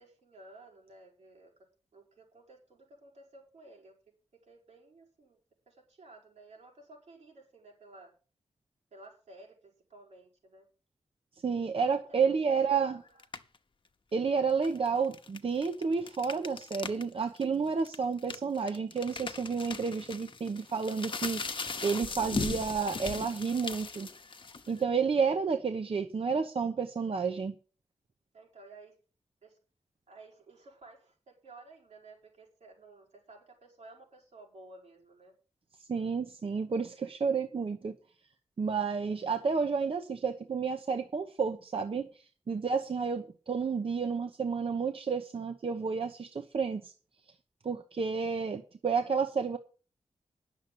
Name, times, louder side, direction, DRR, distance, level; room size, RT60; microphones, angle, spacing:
voice 1, 0.0-1.5 1.9-3.9 4.5-5.4 5.7-8.1 8.9-10.6 11.8-13.2 28.3-29.0 29.4-29.6 30.1-35.3 39.9-40.0, right 2 dB, 85° right, 5.5 m, -54 dB
voice 2, 11.4-13.0 14.1-24.1 24.7-27.5 35.9-38.0 38.6-46.9 47.6-49.6, right 5 dB, 55° right, 1.0 m, -31 dB
sound 1, 13.2-13.6 14.5-17.0 17.4-17.5 17.8-24.8, left 4 dB, 50° left, 1.0 m, -38 dB
10.5 x 7.2 x 7.7 m
wide cardioid pair, 110°, 11 cm